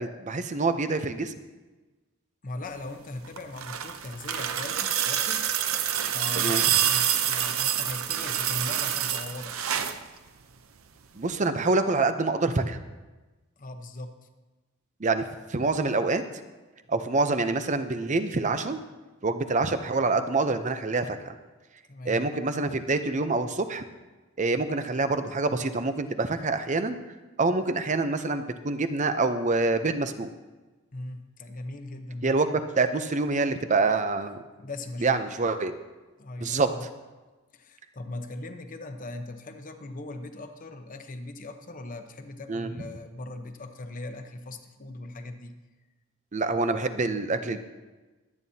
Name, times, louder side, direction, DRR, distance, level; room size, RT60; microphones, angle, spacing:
voice 1, 0.0-1.3 6.4-6.7 11.2-12.8 15.0-16.2 16.9-18.8 19.2-21.4 22.1-23.8 24.4-27.0 27.4-30.3 32.2-34.4 35.0-35.7 36.4-36.7 42.5-42.7 46.3-47.6, right 3 dB, 35° right, 9 dB, 0.6 m, -26 dB
voice 2, 2.4-5.5 6.1-9.6 13.6-14.3 21.9-22.2 30.9-32.4 34.6-35.3 36.2-36.9 37.5-45.5, left 2 dB, 40° left, 6 dB, 0.9 m, -39 dB
sound 1, 3.2-10.0 11.3-11.4, right 10 dB, 75° right, 0.7 m, -27 dB
23.0 x 9.2 x 2.8 m, 1.2 s
head